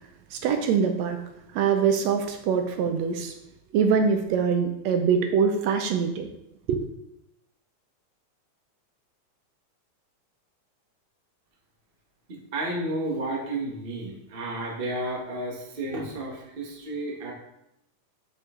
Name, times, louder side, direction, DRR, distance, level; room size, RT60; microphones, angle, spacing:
voice 1, 0.3-1.2 1.5-3.3 3.7-6.3 6.7-6.8, right 6 dB, 75° right, 6 dB, 1.7 m, -23 dB
voice 2, 12.3-17.3, right 1 dB, 60° right, -1 dB, 0.5 m, -32 dB
6.7 x 6.2 x 3.7 m, 0.84 s
omnidirectional pair, 3.4 m